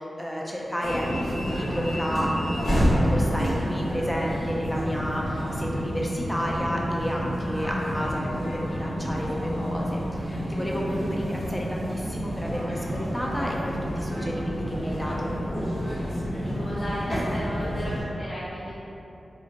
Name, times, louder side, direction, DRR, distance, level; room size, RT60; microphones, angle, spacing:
voice 1, 0.0-15.3, equal, 10° left, -3 dB, 0.5 m, -31 dB
sound 1, 0.8-18.0, equal, 65° left, 1.2 m, -29 dB
voice 2, 16.4-18.7, equal, 35° left, -10 dB, 0.8 m, -34 dB
4.0 x 2.4 x 2.8 m, 2.9 s
cardioid pair, 40°, 0 cm